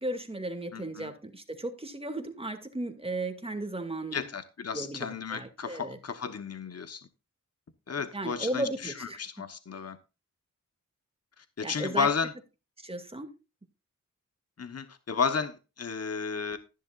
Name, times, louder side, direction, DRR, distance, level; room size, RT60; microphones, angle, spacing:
voice 1, 0.0-4.2 4.7-6.0 8.1-9.2 11.6-12.1 12.8-13.3, right 1 dB, 20° right, 2.3 m, -35 dB
voice 2, 0.7-1.1 4.1-7.1 7.9-10.0 11.4-12.3 14.6-16.6, left 6 dB, 50° left, 1.2 m, -33 dB
13.5 x 11.0 x 2.5 m
wide cardioid pair, 80°, 31 cm